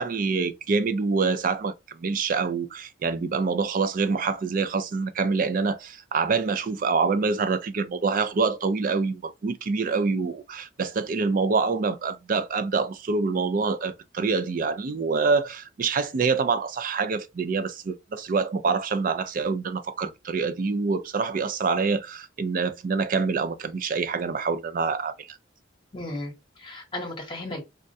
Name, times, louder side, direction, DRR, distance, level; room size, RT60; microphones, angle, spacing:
voice 1, 0.0-25.4, right 4 dB, 45° right, 0.4 m, -26 dB
voice 2, 25.9-27.6, left 1 dB, 25° left, 0.9 m, -35 dB
3.5 x 2.2 x 2.6 m
head